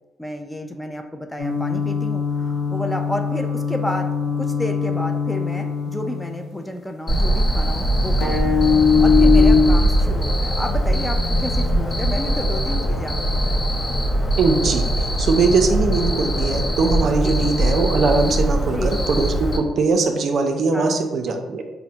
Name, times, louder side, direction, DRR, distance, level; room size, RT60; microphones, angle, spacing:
voice 1, 0.2-4.1 4.4-8.6 9.0-13.6 17.2-17.5 18.7-18.9 20.7-21.0, left 1 dB, 10° left, 5 dB, 0.3 m, -31 dB
sound 1, 1.4-6.5 8.2-9.6, left 6 dB, 85° left, 0.7 m, -21 dB
Cricket, 7.1-19.6, right 1 dB, 45° left, 0.7 m, -21 dB
voice 2, 14.4-21.6, right 4 dB, 60° right, 5 dB, 0.4 m, -21 dB
4.2 x 2.0 x 2.8 m, 1.2 s
cardioid pair, 90°, 0 cm